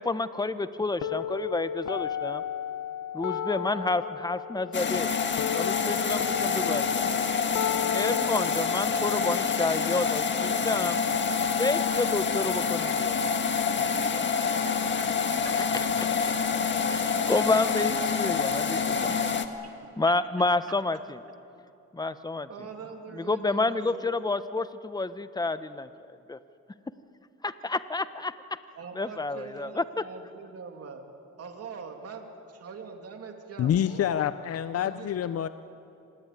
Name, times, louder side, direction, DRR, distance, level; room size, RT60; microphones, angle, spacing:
voice 1, 0.0-2.4 3.1-5.1 5.5-7.0 7.9-11.0 11.6-13.2 15.0-15.1 15.4-16.3 16.9-19.4 20.0-21.2 21.9-22.5 23.1-25.9 26.3-26.4 27.6-28.3 28.9-30.0, left 3 dB, 15° left, 13 dB, 1.0 m, -29 dB
sound 1, 1.0-11.0, left 9 dB, 75° left, 1.1 m, -35 dB
sound 2, 4.7-19.5, left 5 dB, 40° left, 1.7 m, -27 dB
voice 2, 22.5-24.1 28.7-31.0 31.4-34.3 34.7-35.1 35.3-35.5, right 5 dB, 55° right, 4 dB, 2.7 m, -43 dB
voice 3, 33.6-35.5, left 10 dB, 55° left, 13 dB, 0.7 m, -27 dB
25.5 x 19.5 x 9.3 m, 2.7 s
cardioid pair, 90°, 30 cm